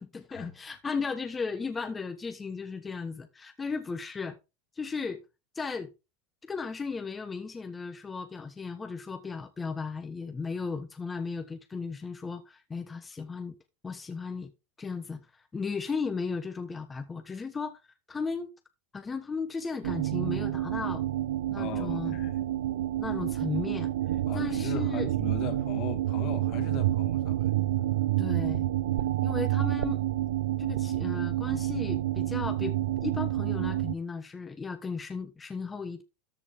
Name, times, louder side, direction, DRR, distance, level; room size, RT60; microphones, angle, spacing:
voice 1, 0.0-4.4 4.8-5.2 5.5-5.9 6.5-13.5 13.8-14.5 14.8-17.8 18.1-18.5 18.9-21.0 21.5-22.3 23.0-25.1 28.2-28.6 29.2-30.0 30.6-32.7 33.0-36.0, left 5 dB, 20° left, 1.1 m, -35 dB
sound 1, 19.8-33.9, right 13 dB, 85° right, 0.6 m, -29 dB
voice 2, 21.6-22.4 24.3-27.5, left 11 dB, 50° left, 1.7 m, -39 dB
13.5 x 4.9 x 3.5 m
hypercardioid pair, 105°, 0 cm